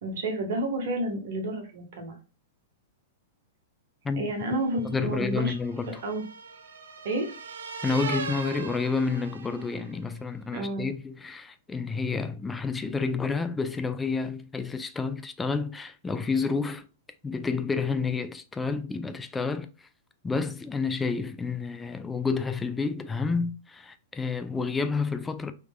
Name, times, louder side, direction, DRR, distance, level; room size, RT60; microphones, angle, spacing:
voice 1, 0.0-2.2 4.2-5.6 5.9-6.2 7.0-7.3 10.5-10.9, right 1 dB, 65° right, 1.5 m, -30 dB
sound 1, 4.5-10.0, right 5 dB, 80° right, 0.6 m, -39 dB
voice 2, 4.8-6.0 7.8-16.9 17.2-19.7 20.2-25.5, left 4 dB, 15° left, 0.4 m, -29 dB
3.6 x 3.1 x 2.3 m
hypercardioid pair, 115°, 0 cm